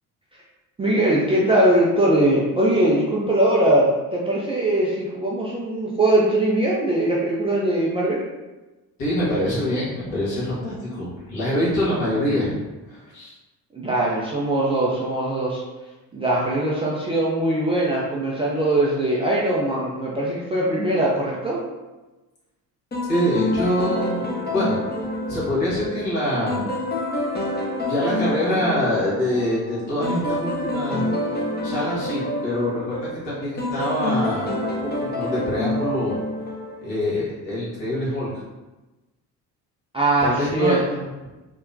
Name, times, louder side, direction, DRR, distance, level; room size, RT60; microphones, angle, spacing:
voice 1, 0.8-8.2 13.7-15.6 16.1-21.6 39.9-41.0, right 1 dB, 15° right, -6 dB, 0.3 m, -21 dB
voice 2, 9.0-12.6 12.9-13.3 23.1-24.8 25.3-26.7 27.9-34.5 34.8-36.2 36.8-38.3 40.2-41.0, left 1 dB, 65° left, -7 dB, 1.5 m, -25 dB
sound 1, 22.9-37.1, left 1 dB, 20° left, 0.6 m, -28 dB
3.6 x 2.1 x 2.6 m, 1.1 s
figure-of-eight pair, 50°, 48 cm